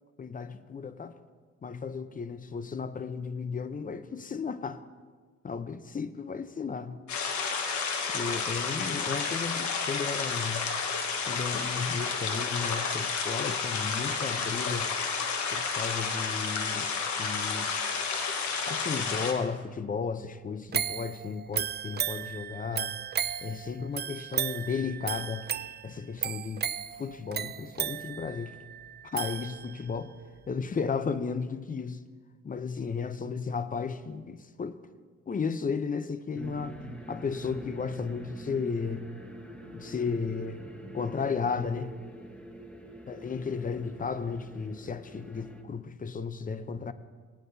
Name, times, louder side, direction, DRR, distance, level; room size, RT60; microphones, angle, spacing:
voice 1, 0.2-1.2 1.6-4.8 5.4-7.0 8.1-10.7 11.2-14.9 15.5-17.7 18.7-23.0 23.4-25.5 25.8-26.7 27.0-28.6 29.0-30.1 30.5-32.0 32.4-34.8 35.3-36.8 37.1-39.0 39.7-40.6 40.9-41.9 43.1-46.9, left 5 dB, 30° left, 0.6 m, -34 dB
sound 1, 7.1-19.3, left 5 dB, 70° left, 1.4 m, -31 dB
sound 2, 20.7-30.0 30.4-30.5, right 10 dB, 35° right, 0.4 m, -35 dB
sound 3, 36.3-45.6, right 1 dB, 5° left, 1.2 m, -44 dB
17.5 x 9.8 x 2.7 m
cardioid pair, 90°, 30 cm